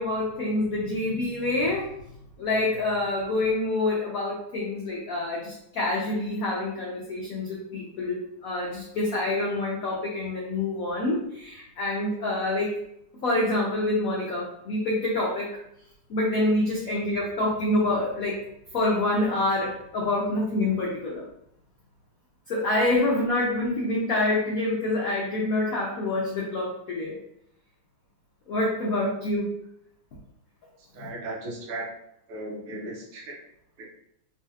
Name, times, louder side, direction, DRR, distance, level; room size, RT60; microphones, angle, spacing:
voice 1, 0.0-1.9 2.4-12.7 13.2-15.5 16.1-18.4 18.7-21.2 22.5-27.1 28.5-29.5 31.0-31.1, left 2 dB, 75° left, -4 dB, 0.7 m, -26 dB
voice 2, 30.9-31.9 32.3-33.4 33.8-33.9, right 2 dB, 85° right, -1 dB, 1.7 m, -36 dB
4.0 x 2.8 x 2.4 m, 0.75 s
omnidirectional pair, 2.3 m